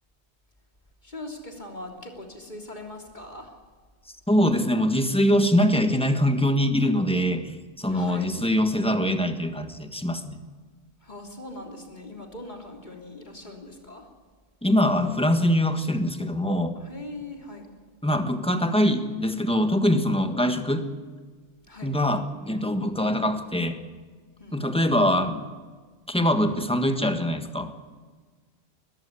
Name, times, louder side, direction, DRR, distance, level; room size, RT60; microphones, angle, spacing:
voice 1, 1.0-3.5 7.9-8.4 11.0-14.1 16.7-17.7 21.7-22.0 24.4-24.8, left 2 dB, 40° left, 2 dB, 3.5 m, -41 dB
voice 2, 4.3-10.4 14.6-16.8 18.0-20.9 21.8-23.8 24.5-25.4 26.1-27.7, equal, 5° left, 7 dB, 1.4 m, -23 dB
20.5 x 15.5 x 9.8 m, 1.5 s
omnidirectional pair, 1.2 m